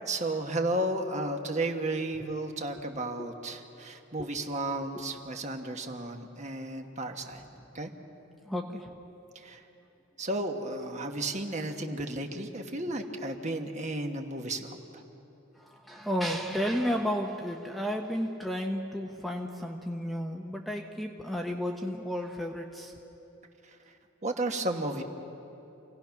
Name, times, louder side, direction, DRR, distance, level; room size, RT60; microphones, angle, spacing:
voice 1, 0.1-7.4 7.7-7.9 9.3-9.6 10.2-15.0 24.2-25.0, right 2 dB, 35° right, 4 dB, 1.3 m, -33 dB
voice 2, 8.5-9.0 12.9-13.0 15.6-22.9, equal, ahead, 2 dB, 0.8 m, -32 dB
28.0 x 17.5 x 5.9 m, 3.0 s
head